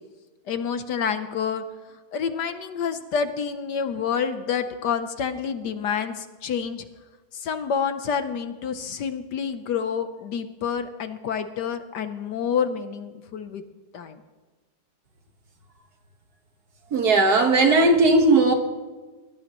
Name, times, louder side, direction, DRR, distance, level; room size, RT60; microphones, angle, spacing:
voice 1, 0.5-1.6 2.1-6.8 7.3-13.6 13.9-14.2, left 7 dB, 65° left, 1.3 m, -28 dB
voice 2, 16.9-18.5, right 2 dB, 55° right, 1.9 m, -17 dB
23.0 x 18.0 x 3.0 m
omnidirectional pair, 2.1 m